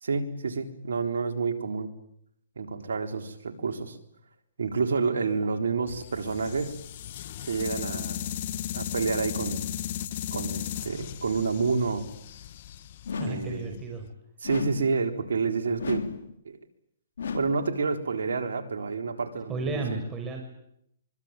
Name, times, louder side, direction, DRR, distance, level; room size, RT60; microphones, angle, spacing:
voice 1, 0.0-1.9 2.6-4.0 4.6-6.8 7.4-8.3 8.7-9.7 10.3-12.1 13.2-13.8 14.4-16.0 16.5-16.6 17.3-20.0, right 4 dB, 85° right, 6 dB, 3.9 m, -29 dB
sound 1, 5.9-14.0, left 11 dB, 50° left, 1.3 m, -36 dB
sound 2, 13.0-13.6 14.4-15.0 15.8-16.3 17.2-17.7, left 5 dB, 75° left, 3.5 m, -34 dB
voice 2, 13.2-14.1 19.5-20.5, right 3 dB, 20° right, 3 dB, 5.8 m, -33 dB
24.5 x 24.5 x 9.1 m, 0.74 s
hypercardioid pair, 140°, 0 cm